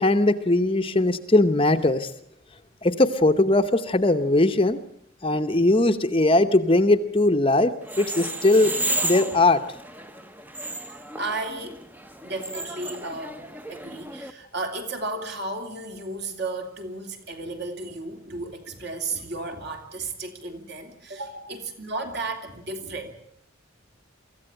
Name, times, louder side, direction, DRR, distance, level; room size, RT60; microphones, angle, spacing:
voice 1, 0.0-2.1 2.8-4.8 5.2-8.7 9.0-9.6, left 2 dB, 25° left, 9 dB, 0.9 m, -20 dB
sound 1, 7.8-14.3, right 1 dB, 10° right, 0.8 m, -33 dB
voice 2, 10.9-11.8 12.2-13.4 13.7-23.1, right 2 dB, 50° right, 4 dB, 3.3 m, -34 dB
24.0 x 15.0 x 8.9 m, 0.73 s
head